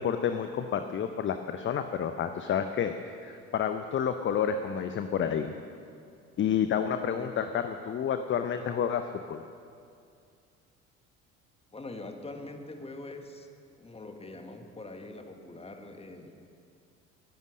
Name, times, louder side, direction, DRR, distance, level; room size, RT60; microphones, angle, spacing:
voice 1, 0.0-5.5 6.4-9.4, left 8 dB, 30° left, 9 dB, 0.8 m, -30 dB
voice 2, 11.7-13.5 13.8-16.3, left 2 dB, 15° left, 5 dB, 1.7 m, -43 dB
19.5 x 11.0 x 6.3 m, 2.4 s
figure-of-eight pair, 60°, 40 cm